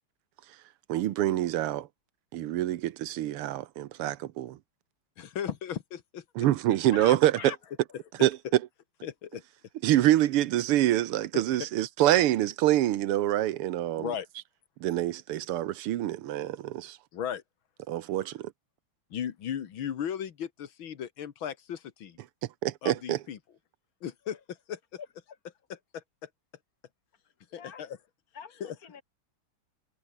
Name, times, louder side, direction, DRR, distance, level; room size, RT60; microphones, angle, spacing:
voice 1, 0.9-1.9 2.3-4.6 6.4-7.5 8.2-8.6 9.8-14.1 14.8-17.0 17.9-18.5 22.6-23.2, right 13 dB, 85° right, 1.8 m, -26 dB
voice 2, 5.2-6.5 9.0-9.4 11.3-11.4 14.0-14.3 17.1-17.4 19.1-22.2 22.8-23.4 24.0-24.4 24.7-24.8 25.9-26.3 27.5-28.0 28.6-28.8, left 9 dB, 65° left, 2.1 m, -36 dB
voice 3, 6.9-7.6 18.2-18.4 24.3-24.4 25.3-25.4 27.5-27.8 28.3-29.0, left 7 dB, 40° left, 2.8 m, -44 dB
omnidirectional pair, 2.4 m